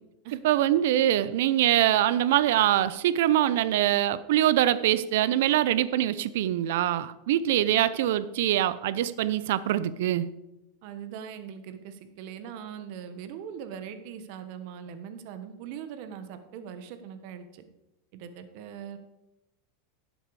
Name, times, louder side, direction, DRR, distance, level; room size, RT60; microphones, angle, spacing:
voice 1, 0.4-10.3, right 12 dB, 70° right, 16 dB, 0.6 m, -24 dB
voice 2, 10.8-17.6 18.1-19.0, right 8 dB, 55° right, 10 dB, 1.2 m, -41 dB
12.0 x 7.7 x 4.8 m, 0.96 s
supercardioid pair, 145°, 0 cm